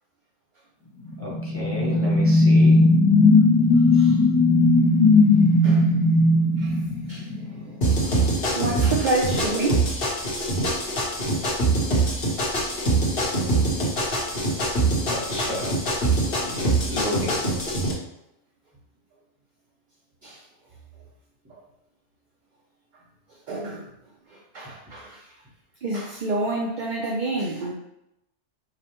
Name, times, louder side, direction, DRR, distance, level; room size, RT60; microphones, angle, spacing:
sound 1, 1.1-7.6, left 2 dB, 70° left, 1.2 m, -17 dB
voice 1, 1.2-2.9 15.0-15.7 16.4-17.4, left 1 dB, 15° right, 0.8 m, -32 dB
voice 2, 7.1-8.3 8.5-10.2 10.9-11.0 11.3-11.4 16.1-16.2 20.2-20.4 21.5-21.6 23.5-23.9 24.3-25.3 25.8-27.7, right 2 dB, 60° right, 0.5 m, -29 dB
sound 2, 7.8-17.9, right 2 dB, 50° left, 1.1 m, -24 dB
4.9 x 2.1 x 2.9 m
omnidirectional pair, 1.3 m